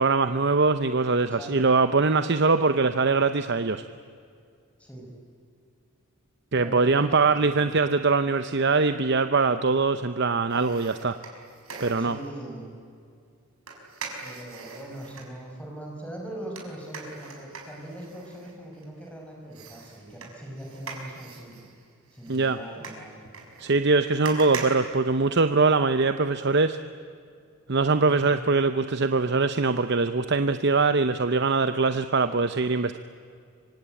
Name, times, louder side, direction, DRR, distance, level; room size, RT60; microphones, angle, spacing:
voice 1, 0.0-3.8 6.5-11.2 11.8-12.2 22.3-22.6 23.6-26.8 27.7-33.0, right 4 dB, 50° right, 10 dB, 0.8 m, -22 dB
voice 2, 1.3-1.9 4.8-5.1 6.5-7.8 12.0-12.7 14.2-21.6 22.1-23.1, right 1 dB, 5° left, 0 dB, 5.6 m, -41 dB
sound 1, 10.5-12.3 13.7-15.3 16.6-19.1 19.5-25.7 26.1-26.2, right 4 dB, 70° right, 5.7 m, -41 dB
25.5 x 25.5 x 9.0 m, 2.3 s
head